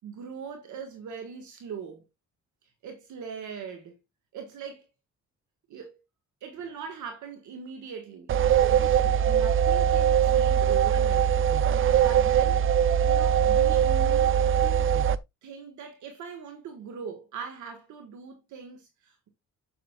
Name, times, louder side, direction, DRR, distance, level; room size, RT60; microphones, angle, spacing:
voice 1, 0.0-2.0 2.8-4.0 4.3-4.9 5.7-6.0 6.4-8.3 8.6-11.3 11.9-12.6 13.0-14.3 14.6-15.0 15.4-19.3, right 6 dB, 75° right, 1.5 m, -41 dB
sound 1, 8.3-15.2, right 9 dB, 45° right, 0.5 m, -22 dB
7.6 x 7.3 x 2.3 m
cardioid pair, 90°, 30 cm